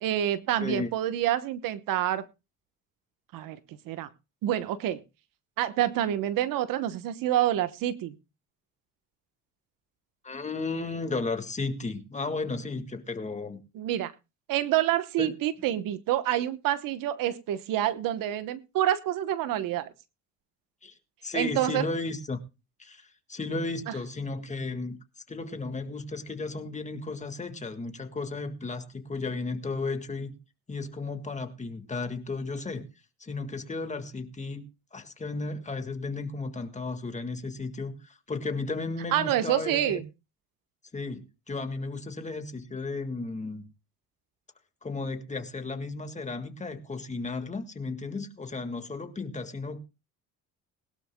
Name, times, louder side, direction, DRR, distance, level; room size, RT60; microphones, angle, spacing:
voice 1, 0.0-2.2 3.3-4.1 4.4-5.0 5.6-8.1 13.7-14.1 14.5-19.9 21.3-21.9 23.9-24.0 39.1-40.0, right 12 dB, 80° right, 1.1 m, -27 dB
voice 2, 10.2-13.6 15.2-15.4 20.8-20.9 21.2-22.4 22.8-25.0 25.3-30.4 30.7-32.9 33.2-34.6 34.9-40.0 40.9-43.6 44.8-49.8, left 3 dB, 20° left, 1.8 m, -34 dB
21.0 x 12.5 x 2.2 m
cardioid pair, 105°, 33 cm